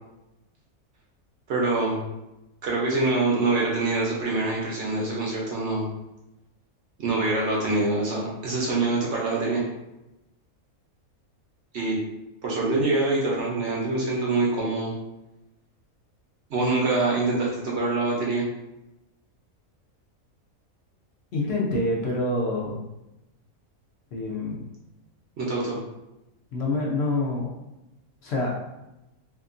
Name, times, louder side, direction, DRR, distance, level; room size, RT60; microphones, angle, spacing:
voice 1, 1.5-2.0 2.6-5.8 7.0-9.6 11.7-12.0 12.4-14.9 16.5-18.4 25.4-25.8, right 2 dB, 60° right, -4 dB, 0.8 m, -25 dB
voice 2, 21.3-22.8 24.1-24.7 26.5-27.5 28.2-28.5, left 2 dB, 60° left, -3 dB, 0.7 m, -26 dB
2.8 x 2.4 x 2.5 m, 0.93 s
omnidirectional pair, 1.5 m